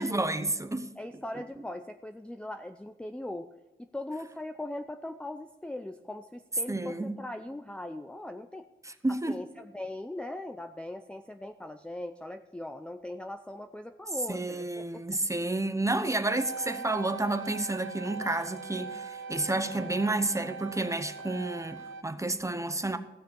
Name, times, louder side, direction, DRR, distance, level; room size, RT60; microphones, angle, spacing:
voice 1, 0.0-0.9 6.7-7.2 9.0-9.4 14.3-23.0, right 2 dB, 15° right, 0.8 m, -30 dB
voice 2, 1.0-3.5 3.8-8.7 9.1-15.0, left 1 dB, 5° left, 0.5 m, -40 dB
sound 1, 16.3-22.0, right 4 dB, 80° right, 0.9 m, -41 dB
16.0 x 6.5 x 7.0 m
wide cardioid pair, 130°, 20 cm